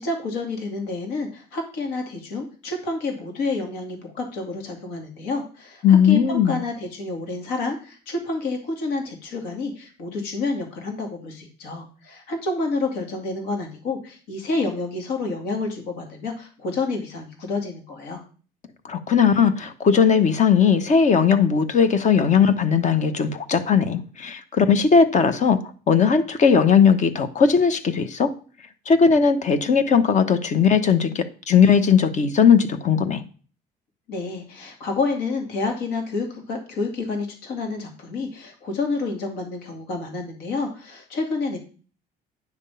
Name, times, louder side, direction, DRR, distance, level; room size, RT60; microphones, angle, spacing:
voice 1, 0.0-18.2 34.1-41.6, left 3 dB, 85° left, 3 dB, 2.3 m, -29 dB
voice 2, 5.8-6.6 18.8-25.6 25.9-28.3 28.9-33.2, left 6 dB, 45° left, 10 dB, 1.0 m, -18 dB
9.5 x 3.6 x 6.9 m, 0.38 s
cardioid pair, 110°, 17 cm